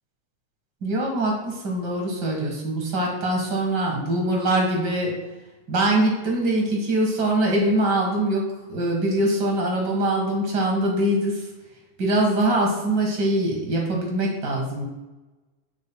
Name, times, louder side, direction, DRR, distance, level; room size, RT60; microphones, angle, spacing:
voice 1, 0.8-5.1 5.7-11.5 12.0-14.8, right 1 dB, 45° right, 0 dB, 1.7 m, -23 dB
11.0 x 6.2 x 2.2 m, 1.1 s
omnidirectional pair, 3.5 m